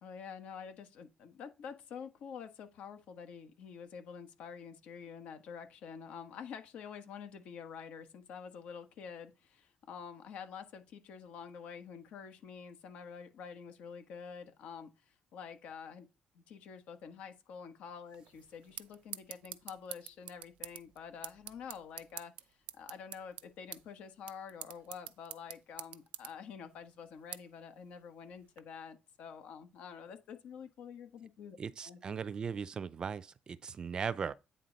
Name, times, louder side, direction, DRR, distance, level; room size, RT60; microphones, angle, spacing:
voice 1, 0.0-16.1 16.3-31.6 31.8-32.0, left 6 dB, 80° left, 1.3 m, -48 dB
sound 1, 18.1-28.6, right 13 dB, 90° right, 0.5 m, -49 dB
voice 2, 31.6-34.3, right 6 dB, 40° right, 0.4 m, -38 dB
9.1 x 3.8 x 4.0 m
cardioid pair, 125°, 2 cm